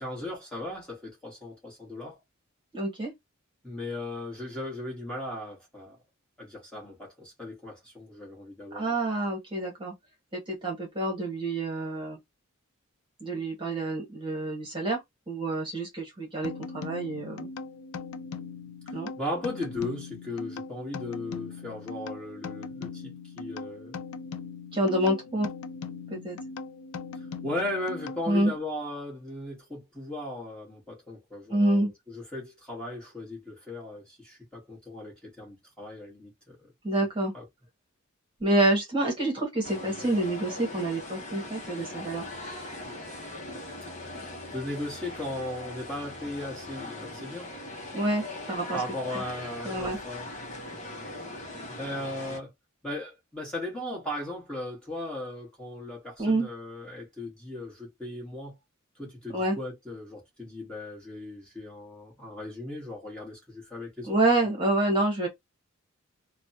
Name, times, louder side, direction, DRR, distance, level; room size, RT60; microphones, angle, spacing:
voice 1, 0.0-2.2 3.6-6.0 6.4-9.0 18.9-24.0 27.4-36.7 37.3-37.4 44.5-47.5 48.7-50.3 51.7-52.5 52.8-58.6 59.0-64.2, left 1 dB, 5° left, 1.5 m, -37 dB
voice 2, 2.7-3.1 8.7-9.9 10.3-12.2 13.2-15.0 15.3-17.5 18.9-19.1 24.7-25.5 26.1-26.4 28.3-28.5 31.5-31.9 36.8-37.3 38.4-42.2 47.9-48.8 49.6-50.0 56.2-56.5 59.3-59.5 64.1-65.3, right 1 dB, 25° right, 1.3 m, -27 dB
sound 1, 16.4-28.6, left 4 dB, 85° left, 0.4 m, -40 dB
sound 2, 39.6-52.4, left 2 dB, 35° left, 0.9 m, -40 dB
3.2 x 2.2 x 2.7 m
head